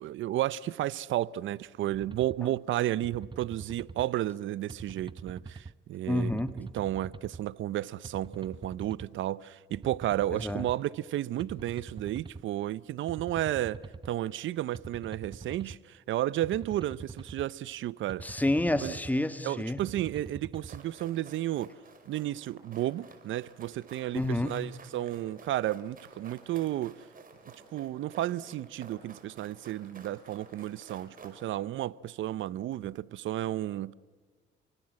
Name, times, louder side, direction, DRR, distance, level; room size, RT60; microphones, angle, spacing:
voice 1, 0.0-13.8 14.0-18.2 18.8-18.9 19.4-21.7 22.1-27.0 27.7-33.9, right 13 dB, 75° right, 0.7 m, -32 dB
sound 1, 1.9-2.4 3.0-4.1 4.7-5.7 6.4-7.4 8.0-9.1 9.7-10.8 11.4-12.4 13.1-14.1 14.7-15.8 16.4-17.5 18.1-19.1 19.8-20.8, right 4 dB, 25° right, 1.0 m, -44 dB
voice 2, 6.1-6.6 10.4-10.6 18.2-19.9 24.1-24.6, left 1 dB, 10° left, 1.6 m, -29 dB
sound 2, 20.5-31.5, right 4 dB, 45° right, 5.2 m, -53 dB
28.5 x 24.5 x 7.7 m
cardioid pair, 90°, 20 cm